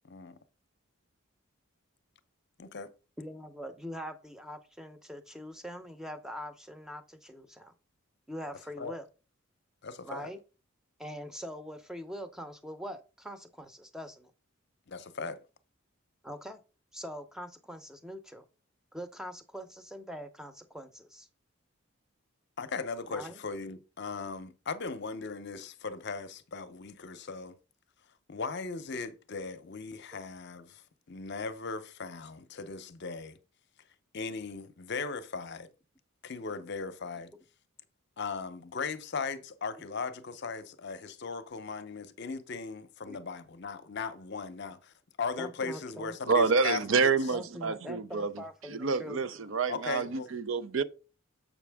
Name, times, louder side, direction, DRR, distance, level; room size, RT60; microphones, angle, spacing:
voice 1, 0.0-0.4 2.6-2.9 8.8-8.9 9.8-10.3 14.9-15.4 22.6-27.6 28.3-30.8 31.1-33.4 34.1-35.7 36.2-37.3 38.2-47.1 49.7-50.3, left 4 dB, 55° left, 0.7 m, -38 dB
voice 2, 3.2-7.7 8.3-9.1 10.0-10.4 11.0-14.3 16.2-16.6 16.9-18.4 18.9-21.3 23.1-23.4 43.1-43.2 45.4-46.2 47.3-49.2, equal, 5° right, 0.7 m, -43 dB
voice 3, 46.3-48.4 48.7-50.8, right 4 dB, 70° right, 0.5 m, -28 dB
7.3 x 5.8 x 3.5 m
head